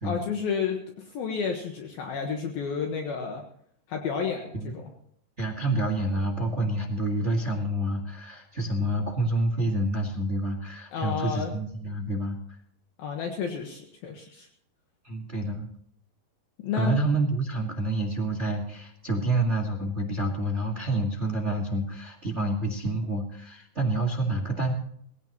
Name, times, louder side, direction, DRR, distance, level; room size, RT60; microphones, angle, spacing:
voice 1, 0.0-3.4 3.9-4.9 10.9-11.6 13.0-14.5 16.6-17.0, left 6 dB, 70° left, 2 dB, 3.0 m, -31 dB
voice 2, 5.4-12.4 15.0-15.7 16.7-24.7, right 1 dB, 40° right, 2 dB, 0.9 m, -28 dB
21.0 x 16.5 x 3.0 m, 0.66 s
omnidirectional pair, 4.7 m